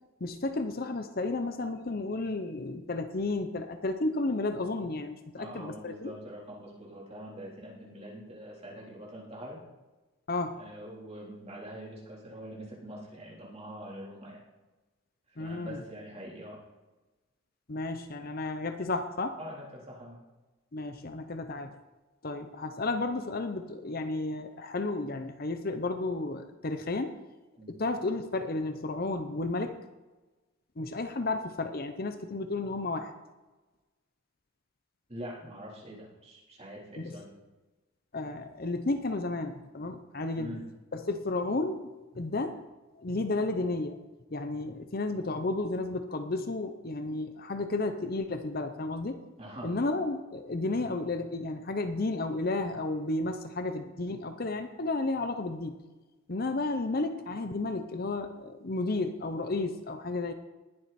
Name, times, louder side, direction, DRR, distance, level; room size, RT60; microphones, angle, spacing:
voice 1, 0.2-6.1 10.3-10.6 15.4-15.8 17.7-19.4 20.7-21.7 22.2-27.1 27.7-29.8 30.8-33.1 37.0-37.2 38.1-40.6 40.9-42.6 43.0-44.0 44.3-49.2 49.6-55.7 56.3-60.3, left 2 dB, 45° left, 8 dB, 0.7 m, -32 dB
voice 2, 5.4-9.6 10.6-14.4 15.4-16.6 19.4-20.2 27.6-27.8 35.1-37.3 40.4-40.6 49.4-49.8, equal, 30° right, -5 dB, 3.7 m, -44 dB
19.5 x 7.7 x 4.3 m, 1.2 s
head